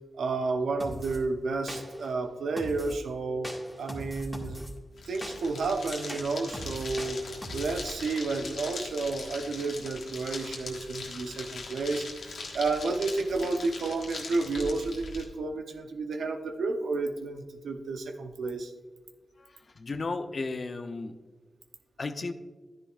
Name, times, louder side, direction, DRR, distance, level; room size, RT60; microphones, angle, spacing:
voice 1, 0.1-4.6 5.1-7.2 7.5-18.7, right 3 dB, 90° right, 5 dB, 0.8 m, -31 dB
sound 1, 0.8-1.2 1.7-2.1 2.6-3.0 3.4-4.7 5.2-7.8, equal, 5° left, 1.9 m, -41 dB
sound 2, 4.9-15.2, left 3 dB, 85° left, 1.5 m, -41 dB
voice 2, 19.8-21.2 22.0-22.3, left 3 dB, 55° left, 9 dB, 0.7 m, -33 dB
11.0 x 10.0 x 2.5 m, 1.3 s
cardioid pair, 55°, 0 cm